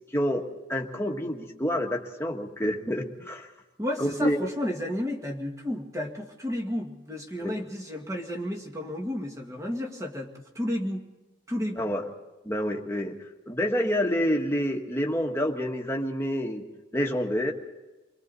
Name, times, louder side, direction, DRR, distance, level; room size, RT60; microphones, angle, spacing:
voice 1, 0.1-0.4 0.7-3.5 4.0-4.5 7.4-7.5 11.8-12.0 12.4-13.1 13.5-16.6 16.9-17.5, equal, 10° left, 1 dB, 1.6 m, -28 dB
voice 2, 3.8-11.1 11.5-11.9, left 1 dB, 15° right, 2 dB, 1.9 m, -32 dB
29.5 x 21.5 x 4.1 m, 1.1 s
head